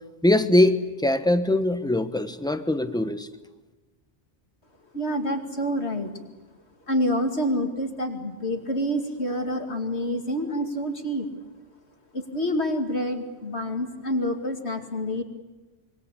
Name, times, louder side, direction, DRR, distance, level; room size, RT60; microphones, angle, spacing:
voice 1, 0.2-3.3, left 1 dB, 5° left, 10 dB, 1.1 m, -22 dB
voice 2, 4.9-6.2 6.9-11.3 12.1-15.2, equal, 60° left, 5 dB, 2.7 m, -27 dB
25.5 x 23.0 x 8.4 m, 1.2 s
omnidirectional pair, 1.2 m